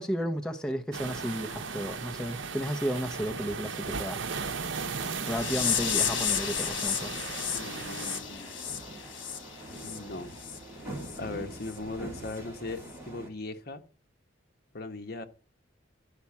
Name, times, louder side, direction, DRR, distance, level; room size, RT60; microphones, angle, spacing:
voice 1, 0.0-4.2 5.2-7.1, equal, 5° left, 0.9 m, -33 dB
sound 1, 0.9-8.2, right 5 dB, 75° right, 0.8 m, -37 dB
sound 2, 5.3-10.0 10.4-10.6 11.0-11.2 11.7-11.8 12.3-12.4, left 8 dB, 75° left, 1.5 m, -32 dB
sound 3, 5.5-13.3, right 1 dB, 15° right, 3.1 m, -44 dB
voice 2, 7.5-8.5 9.8-10.3 11.1-13.8 14.7-15.2, left 2 dB, 55° left, 1.2 m, -39 dB
12.0 x 5.9 x 8.3 m
head